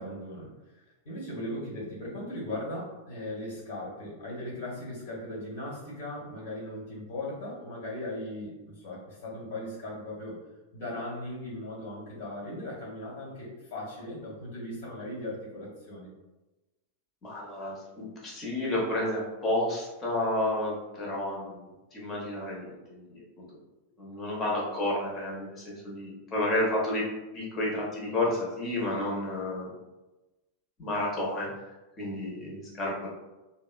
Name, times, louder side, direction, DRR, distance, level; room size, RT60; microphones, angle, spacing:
voice 1, 0.0-10.3 10.7-16.1, left 1 dB, 50° left, -4 dB, 1.4 m, -38 dB
voice 2, 17.2-21.6 21.9-23.4 24.0-27.0 27.3-29.7 30.8-31.5 32.0-33.1, left 1 dB, 25° left, -4 dB, 0.9 m, -31 dB
2.8 x 2.2 x 2.3 m, 1.1 s
figure-of-eight pair, 90°, 0 cm